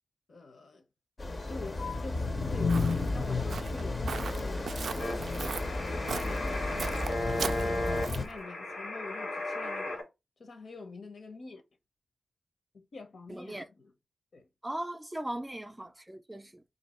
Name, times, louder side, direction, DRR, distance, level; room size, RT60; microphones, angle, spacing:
voice 1, 0.3-0.8 1.5-4.8 5.6-10.0 10.4-11.6 12.7-13.9 14.3-14.5, left 3 dB, 65° left, 0.8 m, -46 dB
sound 1, 1.2-8.3, left 3 dB, 35° left, 0.6 m, -32 dB
Walk footsteps, 2.1-8.4, right 5 dB, 85° right, 0.3 m, -39 dB
sound 2, 5.0-10.0, left 1 dB, 90° left, 1.7 m, -35 dB
voice 2, 13.3-13.7 14.6-16.6, right 1 dB, 15° right, 0.4 m, -39 dB
2.8 x 2.7 x 4.2 m
wide cardioid pair, 105°, 0 cm